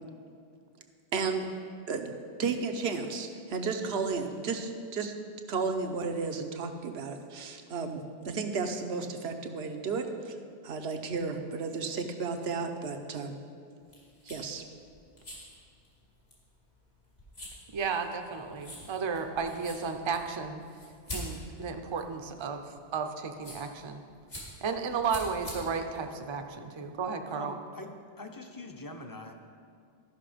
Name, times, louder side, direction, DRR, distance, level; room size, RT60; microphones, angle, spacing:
voice 1, 1.1-1.5 1.9-5.1 5.5-10.4 10.6-13.3 14.2-14.6, right 4 dB, 80° right, 5 dB, 1.0 m, -33 dB
sound 1, 13.8-27.0, left 1 dB, 75° left, 2.8 m, -46 dB
voice 2, 17.7-20.6 21.1-24.0 24.6-27.6, right 5 dB, 35° right, 6 dB, 0.5 m, -33 dB
voice 3, 27.3-29.3, left 2 dB, 25° left, 4 dB, 0.6 m, -44 dB
13.5 x 5.9 x 5.0 m, 2.3 s
omnidirectional pair, 1.1 m